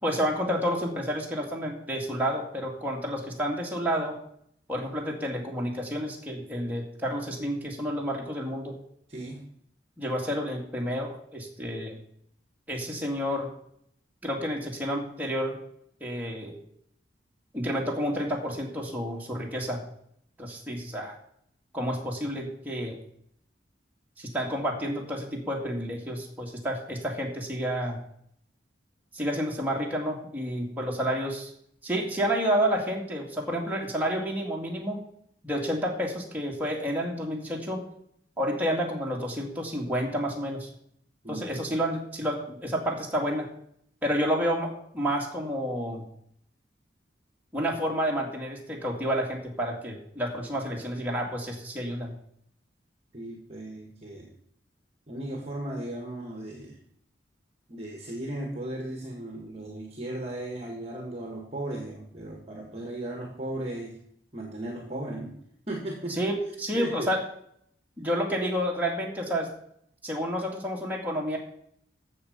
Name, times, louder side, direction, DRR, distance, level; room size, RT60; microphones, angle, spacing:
voice 1, 0.0-4.1 4.7-8.8 10.0-12.0 12.7-13.5 14.2-15.6 16.0-16.5 17.5-19.8 20.4-21.2 21.7-23.0 24.2-28.0 29.1-31.5 31.8-35.0 35.4-37.8 38.4-40.7 41.3-43.5 44.0-46.1 47.5-52.1 66.1-67.2 68.0-69.5 70.0-71.4, equal, 10° right, -2 dB, 2.3 m, -30 dB
voice 2, 9.1-9.4 41.2-41.6 53.1-54.3 55.1-56.8 57.7-64.0 64.3-65.3 65.7-66.2 66.7-67.1, right 1 dB, 35° right, 1 dB, 1.6 m, -36 dB
14.5 x 6.9 x 5.2 m, 0.69 s
head